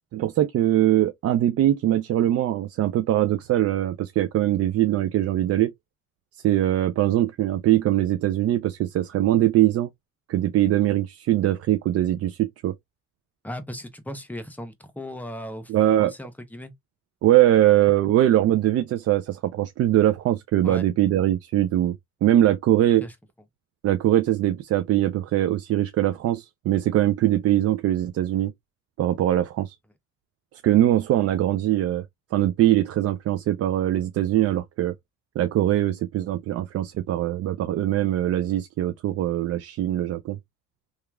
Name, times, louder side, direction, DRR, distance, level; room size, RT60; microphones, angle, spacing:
voice 1, 0.1-5.7 6.4-9.9 10.3-12.7 15.7-16.1 17.2-21.9 22.2-23.1 23.8-28.5 29.0-29.7 30.6-32.0 32.3-34.9 35.4-40.4, right 13 dB, 50° right, 0.4 m, -22 dB
voice 2, 13.4-15.7 16.0-16.7 20.6-20.8 23.0-23.1, equal, 5° left, 0.7 m, -37 dB
2.9 x 2.4 x 2.3 m
supercardioid pair, 85°, 32 cm